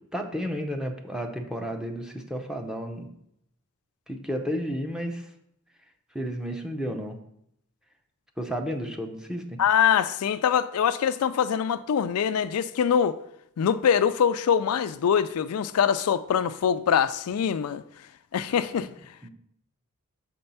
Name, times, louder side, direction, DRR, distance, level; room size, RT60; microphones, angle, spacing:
voice 1, 0.0-3.1 4.1-5.2 6.1-7.2 8.4-9.6 19.2-19.3, equal, 5° right, 0.7 m, -32 dB
voice 2, 9.6-13.2 13.6-17.8 18.3-18.9, left 8 dB, 75° left, 0.4 m, -23 dB
6.7 x 4.4 x 5.5 m
head